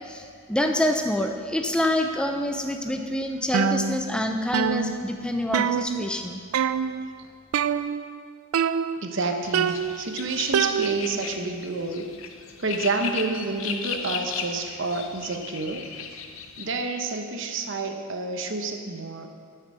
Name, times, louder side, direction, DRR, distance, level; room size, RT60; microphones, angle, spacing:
voice 1, 0.0-6.4, left 1 dB, 5° left, 4 dB, 0.5 m, -26 dB
sound 1, 3.5-4.3 4.5-6.2 6.5-7.1 7.5-8.2 8.5-9.2 9.5-11.2, right 7 dB, 75° right, 0.3 m, -26 dB
voice 2, 9.0-12.1 12.6-15.9 16.6-19.3, right 3 dB, 55° right, 5 dB, 0.9 m, -29 dB
sound 2, 9.4-16.8, left 6 dB, 65° left, 0.7 m, -36 dB
11.5 x 6.6 x 6.2 m, 2.2 s
head